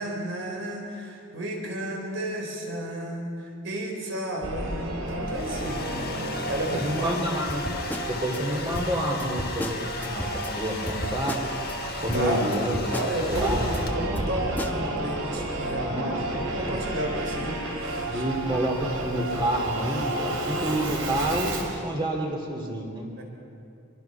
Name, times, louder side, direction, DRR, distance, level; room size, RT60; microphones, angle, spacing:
voice 1, 0.0-5.8 6.5-7.2 12.1-12.5 12.9-17.6 18.1-18.2 23.2-23.3, right 1 dB, 60° right, 1 dB, 4.6 m, -32 dB
Singing / Musical instrument, 4.4-21.8, right 1 dB, 75° right, 3.4 m, -32 dB
Domestic sounds home sounds, 5.1-14.3, left 5 dB, 45° left, 1.5 m, -38 dB
voice 2, 5.6-6.1 6.7-7.6 8.0-11.4 12.0-12.7 13.3-13.6 15.8-16.7 18.1-23.1, right 1 dB, 20° right, 0 dB, 2.8 m, -29 dB
sound 1, 7.5-8.4 8.7-10.5 10.9-11.8 12.1-13.8 14.2-14.8, equal, 10° left, 1.0 m, -34 dB
25.5 x 22.5 x 5.9 m, 2.6 s
head